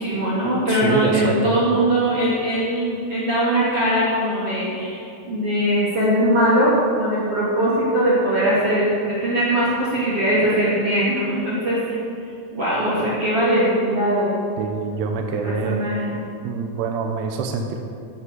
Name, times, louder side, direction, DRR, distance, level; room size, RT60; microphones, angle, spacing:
voice 1, 0.0-12.0 12.5-14.4 15.3-16.2, right 1 dB, 40° right, -9 dB, 2.8 m, -21 dB
voice 2, 0.8-1.6 14.6-15.9 16.4-17.9, right 5 dB, 75° right, 3 dB, 2.7 m, -25 dB
12.0 x 8.7 x 8.0 m, 2.5 s
omnidirectional pair, 5.5 m